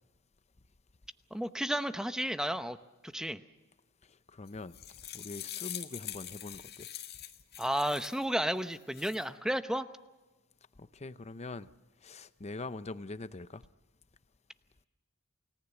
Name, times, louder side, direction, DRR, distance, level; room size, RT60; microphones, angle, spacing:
voice 1, 1.3-2.8 3.1-3.4 7.6-9.9, equal, 5° right, 0.8 m, -32 dB
voice 2, 4.0-4.8 5.1-6.9 10.8-11.7 12.0-13.6, left 3 dB, 30° left, 0.7 m, -43 dB
sound 1, 4.5-8.2 8.7-9.2, left 11 dB, 50° left, 1.7 m, -44 dB
28.5 x 18.5 x 7.2 m
head